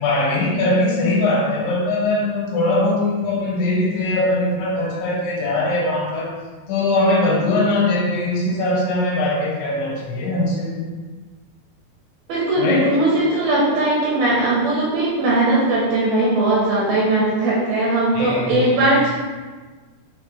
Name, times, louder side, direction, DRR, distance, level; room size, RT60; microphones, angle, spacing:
voice 1, 0.0-6.4 6.7-10.9 12.6-13.0 18.1-18.8, left 2 dB, 85° left, -3 dB, 2.7 m, -21 dB
voice 2, 12.3-19.1, right 2 dB, 80° right, -5 dB, 2.3 m, -19 dB
6.3 x 2.3 x 3.1 m, 1.4 s
omnidirectional pair, 4.8 m